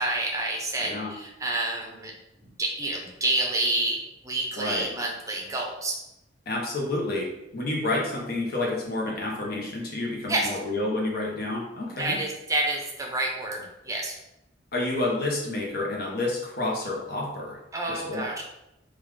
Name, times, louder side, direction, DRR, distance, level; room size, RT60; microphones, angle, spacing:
voice 1, 0.0-2.1 2.4-6.0 10.3-10.5 12.0-14.2 17.7-18.4, right 2 dB, 20° right, -1 dB, 0.6 m, -29 dB
voice 2, 0.8-1.1 4.6-4.9 6.5-12.2 14.7-17.6 17.9-18.3, left 2 dB, 55° left, -2 dB, 0.8 m, -29 dB
3.5 x 2.4 x 3.2 m, 0.88 s
head